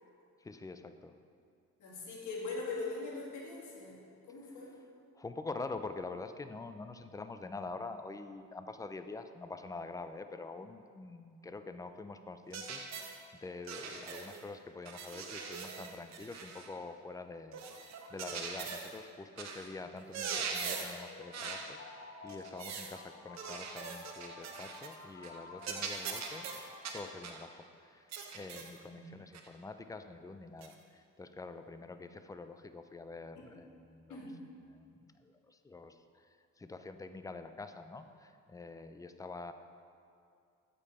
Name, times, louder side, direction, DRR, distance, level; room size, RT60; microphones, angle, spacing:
voice 1, 0.4-1.1 5.2-26.5 26.9-34.2 34.7-39.5, left 3 dB, 10° left, 9 dB, 0.3 m, -46 dB
voice 2, 1.8-4.0 4.3-4.7 28.9-29.1 34.1-34.3, left 3 dB, 80° left, -3 dB, 1.8 m, -41 dB
sound 1, 12.5-13.2 13.7-14.4 14.9-16.7 17.5-19.0 19.4-19.7 20.0-21.0 21.3-21.7 22.3-23.0 23.4-25.0 25.2-25.4 25.6-27.4 28.1-28.8 29.3-29.5 30.6-30.7, right 5 dB, 65° right, 0.8 m, -41 dB
sound 2, 21.0-27.8, left 3 dB, 50° left, 1.0 m, -52 dB
8.3 x 5.3 x 4.2 m, 2.4 s
cardioid pair, 90°, 30 cm